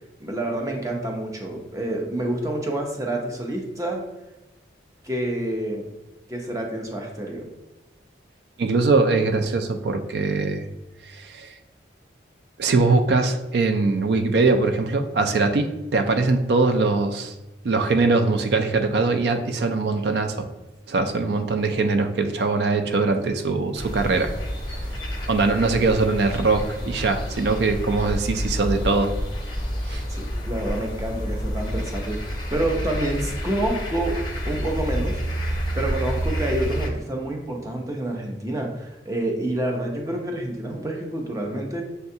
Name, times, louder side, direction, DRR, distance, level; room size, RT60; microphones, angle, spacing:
voice 1, 0.2-4.0 5.0-5.9 6.3-7.5 30.1-34.2 34.4-35.2 35.7-41.8, right 1 dB, 15° right, 1 dB, 0.6 m, -28 dB
voice 2, 8.6-10.7 11.1-11.5 12.6-17.3 17.6-20.5 20.9-24.3 25.3-29.1 29.9-30.0, right 3 dB, 65° right, 7 dB, 0.4 m, -22 dB
sound 1, 23.7-36.9, equal, 25° left, 0.6 m, -29 dB
6.6 x 2.3 x 2.7 m, 0.98 s
head